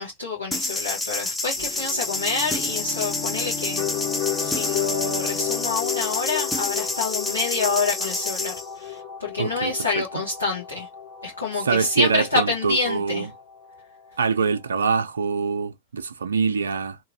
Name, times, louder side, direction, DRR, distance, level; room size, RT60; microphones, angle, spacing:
voice 1, 0.0-3.8 4.4-10.9 11.2-13.3, left 4 dB, 80° left, 1.0 m, -27 dB
sound 1, 0.5-8.6, left 2 dB, 10° left, 0.7 m, -28 dB
sound 2, 1.6-15.1, left 11 dB, 60° left, 1.9 m, -35 dB
Bowed string instrument, 1.8-6.5, left 5 dB, 45° left, 1.0 m, -36 dB
voice 2, 9.4-9.7 11.6-13.3 14.2-17.0, right 5 dB, 70° right, 0.4 m, -24 dB
2.9 x 2.6 x 2.5 m
figure-of-eight pair, 90°, 0 cm